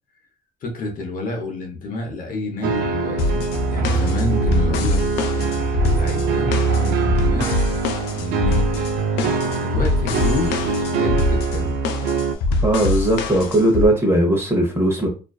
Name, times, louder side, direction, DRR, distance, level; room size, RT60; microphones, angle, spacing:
voice 1, 0.6-3.4 3.7-5.2 5.8-7.5 7.7-7.8 8.1-8.8 9.6-11.8, left 2 dB, 55° left, 2 dB, 0.7 m, -29 dB
sound 1, 2.6-12.4, right 4 dB, 75° right, 0.4 m, -22 dB
sound 2, 3.2-13.9, left 2 dB, 85° left, 0.4 m, -24 dB
voice 2, 12.6-15.1, right 1 dB, 15° right, 1 dB, 0.8 m, -18 dB
2.5 x 2.2 x 2.3 m, 0.33 s
cardioid pair, 110°, 17 cm